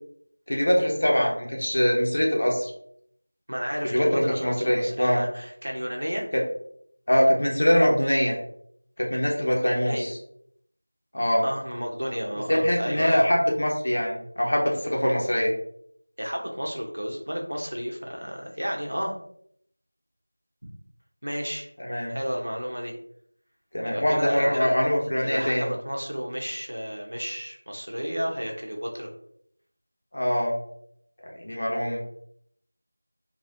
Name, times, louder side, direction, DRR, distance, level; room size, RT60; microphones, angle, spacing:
voice 1, 0.5-2.7 3.8-5.2 6.3-6.4 7.1-8.4 9.0-10.2 11.1-11.4 12.5-15.5 21.8-22.2 23.7-25.7 30.1-30.6 31.2-32.0, equal, 50° left, -1 dB, 0.9 m, -23 dB
voice 2, 3.5-6.3 9.4-10.1 11.4-13.2 15.0-15.1 16.2-19.1 20.6-20.7 21.2-21.7 22.1-22.9 23.9-24.7 25.2-29.1, equal, 80° right, 1 dB, 0.9 m, -32 dB
4.1 x 2.4 x 2.7 m, 0.68 s
figure-of-eight pair, 175°, 0 cm